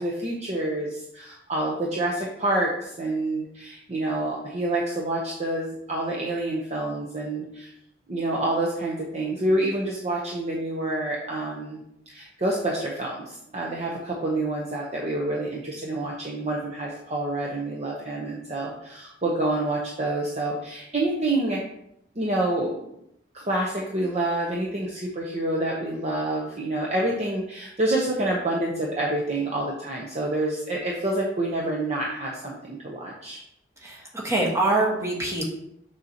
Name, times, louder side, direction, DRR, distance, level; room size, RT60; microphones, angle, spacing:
voice 1, 0.0-7.7 8.1-21.6 22.1-22.9 23.3-33.4, right 1 dB, 40° right, -2 dB, 0.8 m, -28 dB
voice 2, 33.8-35.5, right 2 dB, 15° right, -2 dB, 1.4 m, -24 dB
6.6 x 6.4 x 2.9 m, 0.79 s
head